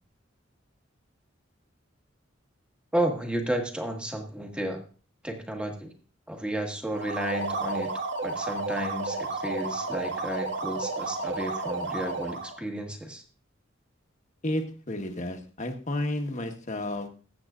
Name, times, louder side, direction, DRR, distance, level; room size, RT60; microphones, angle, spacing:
voice 1, 2.9-4.8 5.2-5.9 6.3-7.9 8.2-13.2, right 1 dB, 5° right, 3 dB, 1.6 m, -32 dB
sound 1, 6.9-12.6, right 3 dB, 65° right, 1.7 m, -32 dB
voice 2, 14.4-17.1, left 1 dB, 40° left, 5 dB, 1.4 m, -31 dB
20.5 x 8.0 x 2.5 m, 0.37 s
head